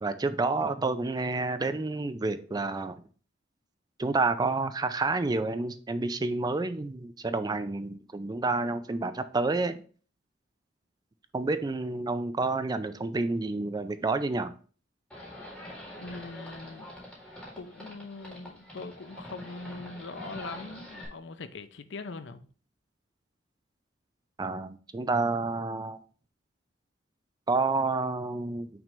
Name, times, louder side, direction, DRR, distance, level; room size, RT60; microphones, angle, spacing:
voice 1, 0.0-3.0 4.0-9.8 11.3-14.5 24.4-26.0 27.5-28.7, right 3 dB, 20° right, 0.4 m, -29 dB
Livestock farm animals working animals, 15.1-21.1, left 1 dB, 5° left, 2.0 m, -45 dB
voice 2, 16.0-16.9 17.6-22.5, left 3 dB, 65° left, 0.6 m, -42 dB
5.9 x 3.3 x 5.2 m
head